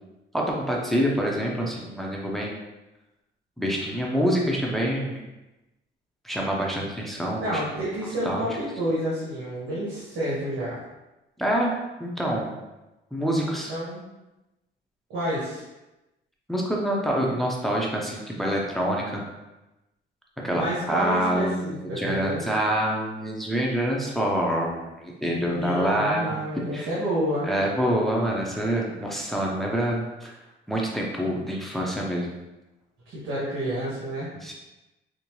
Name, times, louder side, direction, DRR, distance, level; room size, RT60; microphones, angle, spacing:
voice 1, 0.3-2.5 3.6-5.2 6.2-7.6 8.2-8.6 11.4-11.7 12.0-12.6 13.1-13.7 16.5-19.2 20.4-26.3 26.7-26.9 27.4-30.3 30.7-32.3 34.4-34.5, equal, ahead, -2 dB, 0.7 m, -26 dB
voice 2, 7.4-10.8 13.5-14.0 15.1-15.6 20.5-22.5 25.5-27.5 33.1-34.3, right 1 dB, 75° right, -8 dB, 1.3 m, -29 dB
5.2 x 2.1 x 3.0 m, 1.0 s
cardioid pair, 90°, 20 cm